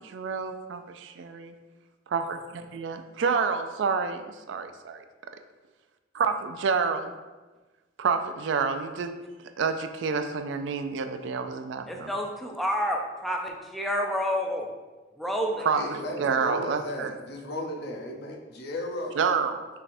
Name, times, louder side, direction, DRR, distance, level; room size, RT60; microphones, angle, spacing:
voice 1, 0.0-1.5 2.1-5.0 6.1-7.1 8.0-9.1 9.6-12.1 15.6-17.1 19.1-19.7, right 5 dB, 65° right, 8 dB, 0.3 m, -28 dB
voice 2, 11.9-14.7 15.2-15.7, equal, ahead, 1 dB, 0.4 m, -29 dB
voice 3, 15.7-19.2, left 1 dB, 55° left, 0 dB, 0.6 m, -35 dB
5.5 x 3.4 x 2.5 m, 1.2 s
head